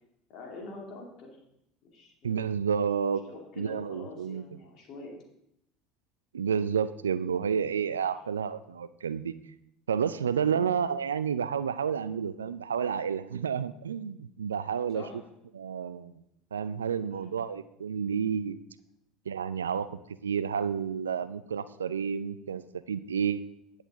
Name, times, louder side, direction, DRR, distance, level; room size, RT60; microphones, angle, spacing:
voice 1, 0.3-1.4 1.8-2.4 3.3-5.2 10.4-10.7 14.9-15.3 16.9-17.1, left 3 dB, 55° left, 0 dB, 2.6 m, -45 dB
voice 2, 2.2-3.2 3.6-4.4 6.3-9.3 9.9-15.0 15.5-16.1 16.5-18.6 19.3-22.6 22.9-23.4, right 7 dB, 85° right, 15 dB, 0.3 m, -30 dB
10.0 x 8.0 x 3.6 m, 0.79 s
hypercardioid pair, 70°, 0 cm